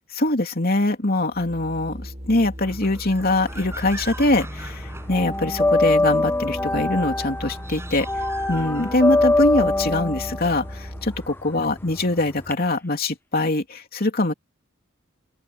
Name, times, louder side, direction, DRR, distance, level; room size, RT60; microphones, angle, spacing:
voice 1, 0.1-8.1 8.5-14.3, left 2 dB, 50° left, 3.1 m, -23 dB
Organ, 1.2-11.5, equal, 35° right, 5.4 m, -37 dB
sound 1, 2.6-5.7 7.3-9.3, right 2 dB, 15° right, 6.5 m, -41 dB
sound 2, 3.2-4.4 4.6-12.5, left 2 dB, 10° left, 0.7 m, -23 dB
open air
head